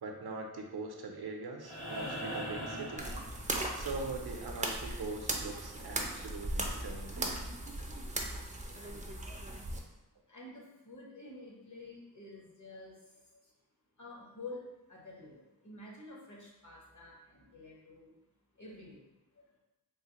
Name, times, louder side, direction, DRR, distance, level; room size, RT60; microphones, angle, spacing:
voice 1, 0.0-3.1 3.7-7.4, right 3 dB, 65° right, 2 dB, 0.5 m, -42 dB
sound 1, 1.6-3.9 5.8-5.9, equal, 65° left, 1.3 m, -40 dB
sound 2, 3.0-9.8, right 1 dB, 20° right, 0.4 m, -38 dB
voice 2, 8.6-9.0 10.3-13.4 14.0-14.6 14.9-18.1 18.6-19.0, left 2 dB, 45° left, -3 dB, 1.0 m, -49 dB
3.2 x 2.5 x 2.8 m, 0.98 s
wide cardioid pair, 45°, 41 cm